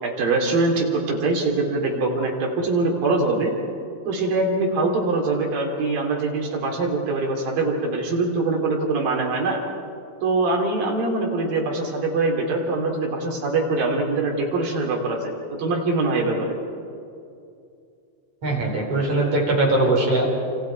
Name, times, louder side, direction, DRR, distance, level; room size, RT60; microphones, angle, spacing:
voice 1, 0.0-3.5 4.1-9.6 10.2-15.3 15.6-16.6, right 3 dB, 65° right, 0 dB, 4.9 m, -23 dB
voice 2, 18.4-20.3, right 2 dB, 40° right, -2 dB, 5.5 m, -21 dB
28.5 x 28.0 x 4.7 m, 2.5 s
omnidirectional pair, 4.3 m